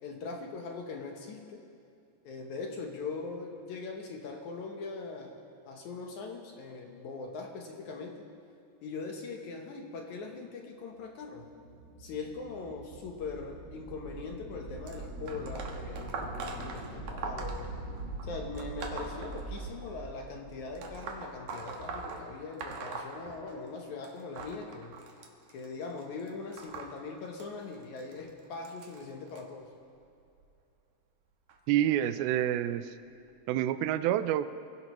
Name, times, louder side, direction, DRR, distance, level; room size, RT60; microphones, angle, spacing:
voice 1, 0.0-1.6 2.2-8.3 8.8-11.5 12.0-17.7 18.2-25.0 25.5-29.7, left 4 dB, 65° left, 2 dB, 2.1 m, -41 dB
sound 1, 11.3-21.4, right 2 dB, 25° right, 5.4 m, -43 dB
sound 2, 14.9-20.0 20.8-23.8 24.0-29.4 30.2-30.4 31.5-31.6 32.5-32.6 33.3-33.4, right 4 dB, 65° right, 2.5 m, -42 dB
voice 2, 31.7-32.9 33.5-34.5, right 12 dB, 90° right, 13 dB, 2.5 m, -28 dB
25.5 x 16.0 x 3.1 m, 2.6 s
omnidirectional pair, 4.2 m